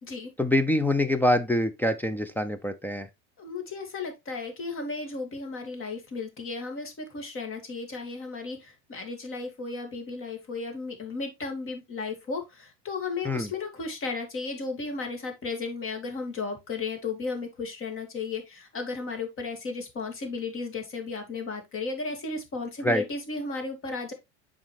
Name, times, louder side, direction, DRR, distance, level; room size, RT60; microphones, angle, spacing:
voice 1, 0.4-3.1 13.2-13.5 22.8-23.0, left 1 dB, 5° left, 0.6 m, -25 dB
voice 2, 3.4-24.1, left 4 dB, 40° left, 2.5 m, -34 dB
7.2 x 5.1 x 3.3 m
supercardioid pair, 100°, 34 cm